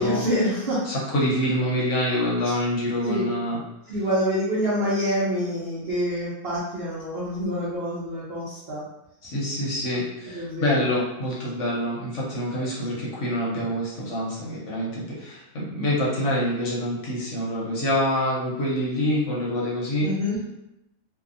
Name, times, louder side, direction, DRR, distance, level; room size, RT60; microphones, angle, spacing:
voice 1, 0.0-0.9 2.4-2.5 3.0-3.2 3.9-8.8 10.3-10.9 12.5-12.6 20.0-20.4, equal, 60° right, -7 dB, 0.7 m, -26 dB
voice 2, 0.8-3.6 9.2-20.1, equal, 60° left, -5 dB, 0.9 m, -26 dB
2.7 x 2.3 x 2.5 m, 0.89 s
omnidirectional pair, 1.6 m